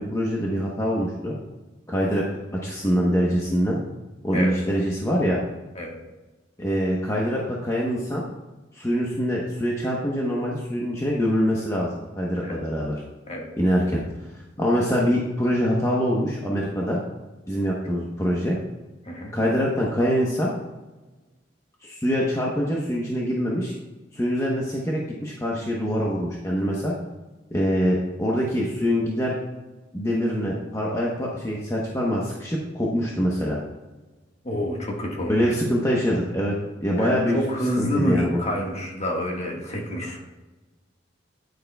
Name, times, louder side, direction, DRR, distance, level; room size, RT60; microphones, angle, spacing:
voice 1, 0.0-1.4 1.9-2.2 2.5-3.8 4.2-5.4 6.6-8.2 8.7-11.9 12.2-13.0 13.6-14.0 14.6-17.0 17.5-18.6 19.3-20.5 21.8-23.7 24.1-26.9 27.5-29.4 29.9-33.6 35.3-36.5 36.8-37.4 37.8-38.4, equal, 15° left, -4 dB, 0.9 m, -24 dB
voice 2, 34.4-35.5 36.9-40.2, equal, 35° left, 0 dB, 1.5 m, -28 dB
9.4 x 9.3 x 2.3 m, 1.2 s
head